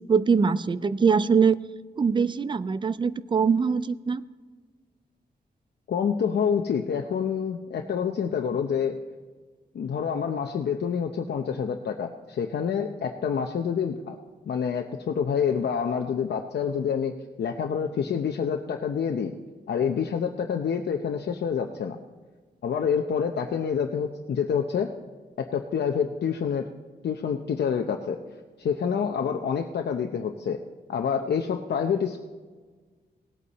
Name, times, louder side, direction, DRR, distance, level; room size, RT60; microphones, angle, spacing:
voice 1, 0.1-1.6 2.0-4.2, right 5 dB, 30° right, 15 dB, 0.4 m, -22 dB
voice 2, 5.9-9.0 9.7-14.2 14.5-19.3 19.7-22.0 22.6-24.9 25.4-26.7 27.0-28.2 28.6-30.6 30.9-32.2, left 7 dB, 75° left, 3 dB, 0.7 m, -27 dB
18.5 x 8.3 x 4.2 m, 1.4 s
wide cardioid pair, 140°, 17 cm